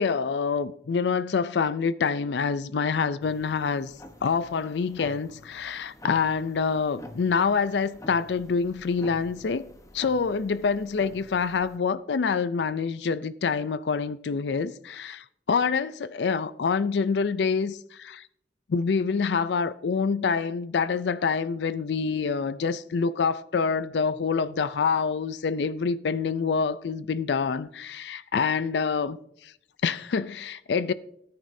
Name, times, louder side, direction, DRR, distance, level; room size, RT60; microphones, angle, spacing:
voice 1, 0.0-3.9 4.2-9.6 9.9-18.2 18.7-29.2 29.4-29.5 29.8-30.9, left 5 dB, 70° left, 0.4 m, -26 dB
sound 1, 3.2-11.8, left 1 dB, 20° left, 1.0 m, -48 dB
18.0 x 9.5 x 2.7 m
head